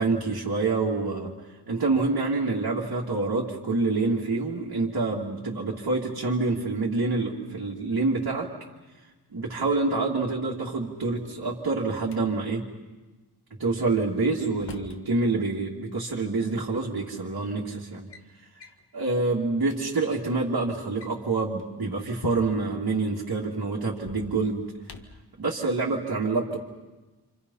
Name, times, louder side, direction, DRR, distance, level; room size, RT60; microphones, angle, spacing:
voice 1, 0.0-1.3 1.7-8.5 9.3-12.6 13.6-18.1 18.9-24.7 25.4-26.6, right 3 dB, 65° right, -4 dB, 2.7 m, -27 dB
Drawer open or close, 10.8-12.2 13.9-15.0 16.3-16.4 17.2-17.5 17.8-18.3 18.6-18.8 19.3-19.4 19.6-19.8 20.8-22.8 23.9-25.3, left 5 dB, 85° left, 1.8 m, -45 dB
29.5 x 27.5 x 5.7 m, 1.2 s
wide cardioid pair, 125°, 40 cm